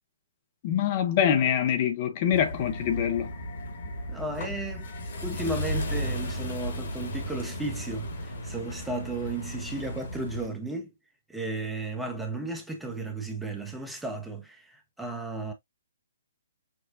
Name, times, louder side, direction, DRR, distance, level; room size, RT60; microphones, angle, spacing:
voice 1, 0.6-3.3, left 9 dB, 35° left, 0.7 m, -25 dB
sound 1, 2.3-10.5, equal, 55° left, 1.5 m, -35 dB
voice 2, 4.1-4.9 5.2-10.9 11.3-15.5, right 2 dB, 5° right, 0.8 m, -34 dB
6.0 x 2.3 x 2.5 m
figure-of-eight pair, 130°, 0 cm